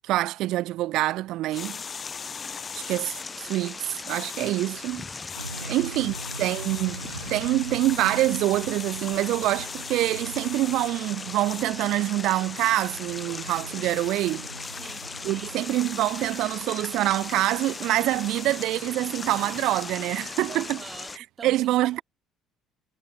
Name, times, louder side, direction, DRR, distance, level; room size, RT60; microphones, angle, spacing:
voice 1, 0.1-1.8 2.8-3.1 3.4-3.8 4.0-5.1 5.7-7.0 7.3-14.5 15.2-20.8 21.4-22.0, right 16 dB, 55° right, 0.7 m, -25 dB
sound 1, 1.5-3.3 4.1-4.5 5.2-5.7 6.1-6.9 7.8-10.9 11.4-11.6 12.6-12.9 13.5-14.3 14.6-15.0 15.7-16.4 17.1-18.8 19.1-19.9, left 8 dB, 40° left, 6.6 m, -42 dB
sound 2, 1.5-21.2, left 4 dB, 25° left, 2.0 m, -38 dB
sound 3, 5.3-15.6, right 2 dB, 90° right, 1.6 m, -42 dB
voice 2, 5.5-5.8 14.7-15.5 20.5-22.0, right 5 dB, 30° right, 5.5 m, -45 dB
figure-of-eight pair, 55°, 0 cm